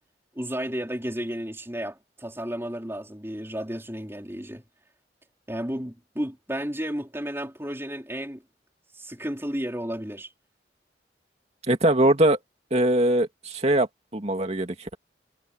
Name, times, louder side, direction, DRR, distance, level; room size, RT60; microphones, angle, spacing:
voice 1, 0.3-4.6 5.5-8.4 8.9-10.3, equal, 15° right, 4.4 m, -32 dB
voice 2, 11.7-12.4 12.7-15.0, right 1 dB, 35° right, 2.4 m, -22 dB
head